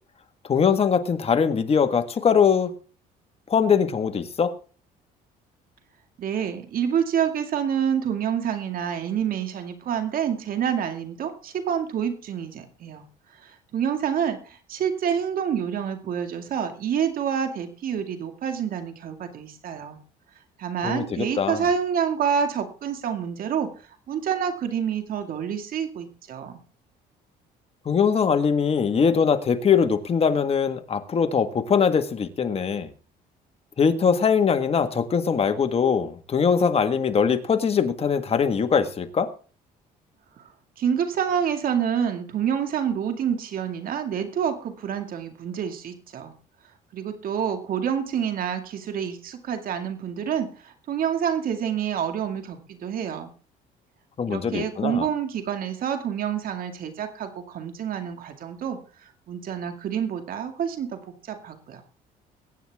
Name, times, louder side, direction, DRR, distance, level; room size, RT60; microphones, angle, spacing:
voice 1, 0.5-2.7 3.5-4.5 20.8-21.6 27.8-32.9 33.8-39.3 54.2-55.1, left 6 dB, 35° left, 8 dB, 1.7 m, -22 dB
voice 2, 6.2-13.0 13.4-20.0 20.6-23.7 24.1-26.6 40.4-40.5 40.8-46.3 46.9-53.3 54.3-58.8 59.3-61.8, right 8 dB, 60° right, 6 dB, 2.2 m, -27 dB
22.0 x 9.3 x 3.6 m, 0.39 s
cardioid pair, 110°, 17 cm